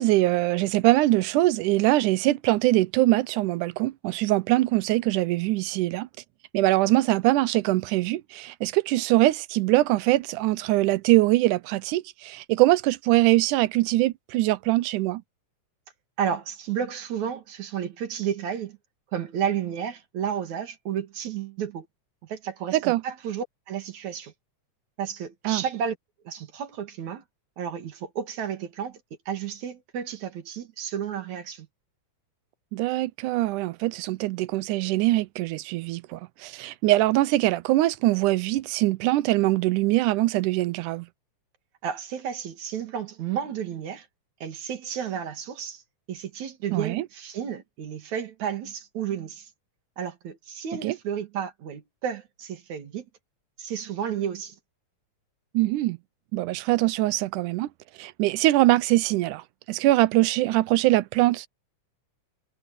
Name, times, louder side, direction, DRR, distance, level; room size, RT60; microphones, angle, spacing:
voice 1, 0.0-6.1 6.5-15.2 22.7-23.0 25.5-25.6 32.7-41.1 46.7-47.1 50.8-51.0 55.5-56.0 56.3-57.7 58.0-61.5, right 17 dB, 80° right, 2.1 m, -23 dB
voice 2, 16.2-18.8 19.1-21.9 22.2-24.3 25.0-26.0 26.3-27.2 27.6-29.0 29.3-31.7 41.8-44.1 44.4-45.8 46.1-49.5 50.0-53.1 53.6-54.6, right 8 dB, 65° right, 3.4 m, -32 dB
omnidirectional pair, 3.6 m